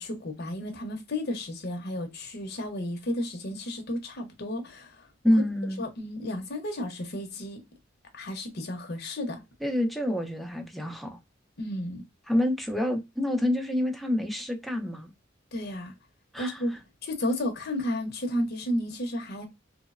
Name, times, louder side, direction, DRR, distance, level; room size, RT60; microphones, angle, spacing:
voice 1, 0.0-5.1 5.8-7.6 8.1-9.4 11.6-12.0 15.5-15.9 16.4-16.7 17.0-19.5, left 1 dB, 55° left, 0.7 m, -32 dB
voice 2, 5.2-5.8 9.6-11.2 12.3-15.1 16.3-16.6, left 1 dB, ahead, 0.5 m, -27 dB
2.9 x 2.0 x 2.3 m
head